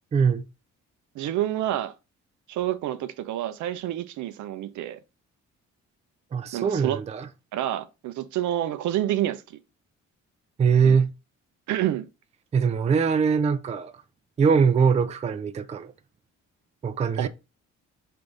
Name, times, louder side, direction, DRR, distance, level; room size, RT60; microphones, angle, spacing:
voice 1, 0.1-0.4 6.3-7.3 10.6-11.1 12.5-13.9 14.4-15.9 16.8-17.3, right 6 dB, 25° right, 0.3 m, -22 dB
voice 2, 1.2-1.9 2.5-5.0 6.5-7.0 7.5-9.6 10.8-11.0 11.7-12.1 17.2-17.3, right 12 dB, 75° right, 0.5 m, -28 dB
3.5 x 3.3 x 3.9 m
cardioid pair, 90°, 30 cm